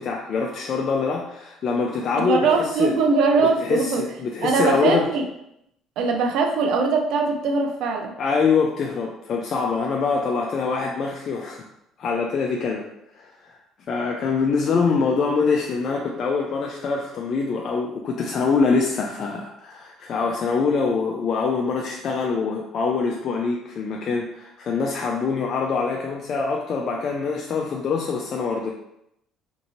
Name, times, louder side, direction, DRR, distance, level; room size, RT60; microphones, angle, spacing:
voice 1, 0.0-2.9 3.6-5.1 8.2-11.6 12.0-12.8 13.2-13.5 13.9-28.7, left 5 dB, 50° left, 0 dB, 0.4 m, -24 dB
voice 2, 2.1-4.1 4.4-5.3 6.0-8.1, right 4 dB, 70° right, 3 dB, 0.5 m, -21 dB
2.7 x 2.6 x 2.7 m, 0.79 s
supercardioid pair, 80°, 0 cm